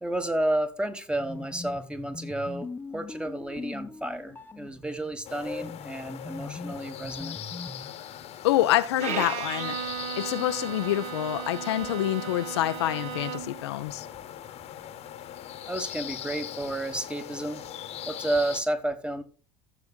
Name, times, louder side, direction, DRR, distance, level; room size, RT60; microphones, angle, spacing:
voice 1, 0.0-7.3 15.7-17.6 18.0-19.2, right 1 dB, 5° right, 1.4 m, -31 dB
sound 1, 1.1-7.9, left 3 dB, 15° left, 0.9 m, -41 dB
sound 2, 5.2-18.6, left 10 dB, 45° left, 1.2 m, -41 dB
voice 2, 8.4-9.8 10.2-14.1, left 14 dB, 70° left, 0.6 m, -27 dB
Bowed string instrument, 9.0-13.7, right 7 dB, 50° right, 1.5 m, -35 dB
15.0 x 6.8 x 2.3 m
figure-of-eight pair, 65°, 14 cm